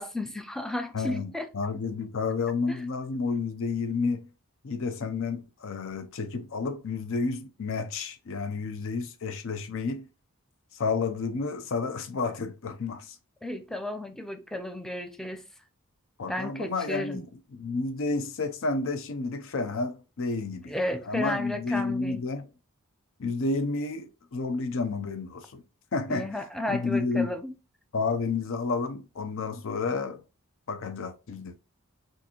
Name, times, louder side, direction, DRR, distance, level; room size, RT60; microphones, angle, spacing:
voice 1, 0.0-1.5 2.7-2.8 13.4-15.4 16.3-17.3 20.7-22.2 26.1-27.5, left 1 dB, ahead, 0.4 m, -33 dB
voice 2, 0.9-4.3 4.6-10.1 10.7-13.2 16.2-17.3 17.5-22.5 23.2-25.6 25.9-26.3 26.7-27.3 27.9-30.2 30.7-31.5, left 4 dB, 60° left, 0.5 m, -30 dB
6.3 x 2.6 x 2.9 m
head